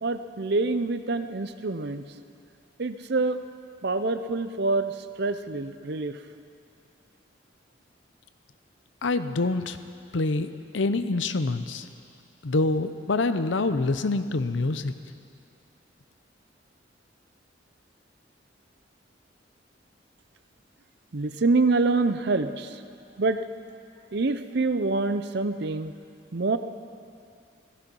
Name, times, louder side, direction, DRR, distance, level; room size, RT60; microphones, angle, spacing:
voice 1, 0.0-2.0 2.8-3.4 3.8-6.2 21.1-22.8 23.2-23.4 24.1-25.9 26.3-26.6, right 3 dB, 60° right, 10 dB, 0.7 m, -26 dB
voice 2, 9.0-9.8 10.1-11.9 12.4-14.9, left 3 dB, 85° left, 11 dB, 0.7 m, -26 dB
17.0 x 14.5 x 5.4 m, 2.4 s
head